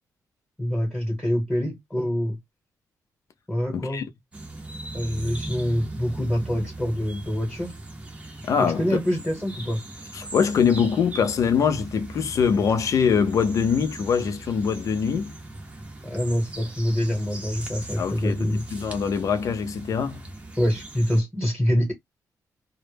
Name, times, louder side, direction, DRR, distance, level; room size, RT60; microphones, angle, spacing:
voice 1, 0.6-2.4 3.5-4.1 4.9-7.7 8.6-9.8 16.0-18.6 20.6-21.9, equal, 5° left, 0.9 m, -25 dB
voice 2, 3.7-4.0 8.4-8.8 10.1-15.4 18.0-20.2, left 6 dB, 55° left, 0.4 m, -23 dB
sound 1, 4.3-21.2, right 2 dB, 20° right, 0.6 m, -39 dB
2.0 x 2.0 x 3.1 m
wide cardioid pair, 165°, 7 cm